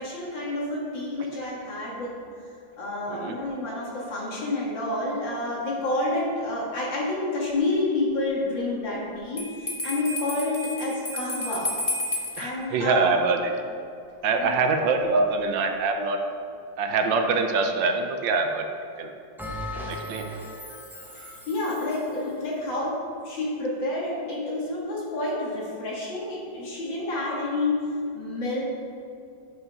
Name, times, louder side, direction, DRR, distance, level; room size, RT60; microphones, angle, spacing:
voice 1, 0.0-2.2 2.8-11.7 12.4-13.1 14.4-14.5 21.1-23.0 23.2-27.9 28.1-28.6, left 2 dB, 75° left, -5 dB, 2.8 m, -29 dB
Bell, 9.4-12.5, left 1 dB, 20° left, 1.2 m, -31 dB
voice 2, 12.4-13.5 14.2-16.2 16.8-18.6 19.0-19.1 19.9-20.2, right 4 dB, 75° right, 5 dB, 1.5 m, -24 dB
Bell 2, 19.4-22.2, left 1 dB, ahead, 0.9 m, -37 dB
9.9 x 5.7 x 5.4 m, 2.5 s
omnidirectional pair, 2.0 m